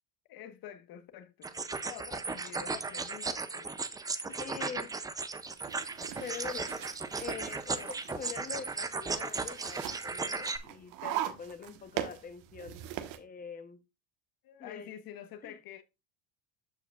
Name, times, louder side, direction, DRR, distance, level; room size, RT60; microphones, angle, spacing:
voice 1, 0.3-3.8 4.3-4.4 6.5-6.9 7.7-7.9 14.4-15.8, left 10 dB, 55° left, 1.2 m, -48 dB
sound 1, 1.4-10.6, right 4 dB, 10° right, 0.3 m, -36 dB
voice 2, 4.4-5.0 6.2-6.8 7.2-12.8 13.2-13.8 14.6-14.9 15.4-15.6, left 6 dB, 20° left, 0.8 m, -44 dB
sound 2, 5.4-13.2, right 12 dB, 80° right, 1.3 m, -41 dB
13.5 x 4.8 x 2.3 m
cardioid pair, 140°, 44 cm